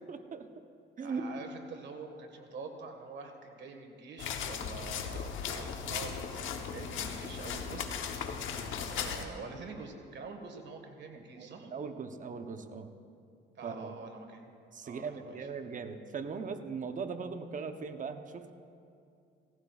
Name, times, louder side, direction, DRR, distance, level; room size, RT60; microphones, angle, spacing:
voice 1, 0.1-0.6 1.0-1.5 9.2-9.3 11.1-12.9 13.6-13.9 14.7-18.5, right 5 dB, 40° right, 7 dB, 0.8 m, -39 dB
voice 2, 1.0-8.0 8.9-11.7 13.5-14.5 14.8-15.4, right 4 dB, 65° right, 4 dB, 1.6 m, -46 dB
sound 1, 4.2-9.2, left 7 dB, 80° left, 1.0 m, -37 dB
17.5 x 15.0 x 2.4 m, 2.5 s
cardioid pair, 90°, 20 cm